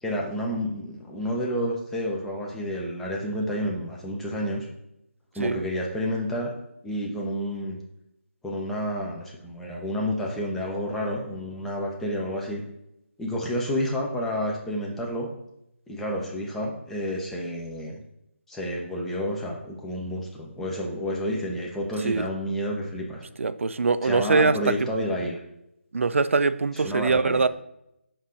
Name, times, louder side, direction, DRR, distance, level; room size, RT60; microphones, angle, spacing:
voice 1, 0.0-4.7 5.4-6.5 6.8-7.8 8.4-12.6 13.2-15.3 15.9-18.0 18.5-23.2 24.0-25.4 26.8-27.5, equal, 5° left, -2 dB, 0.6 m, -30 dB
voice 2, 23.4-24.8 25.9-27.5, right 4 dB, 65° right, 13 dB, 0.4 m, -23 dB
7.2 x 2.7 x 4.8 m, 0.82 s
figure-of-eight pair, 160°, 7 cm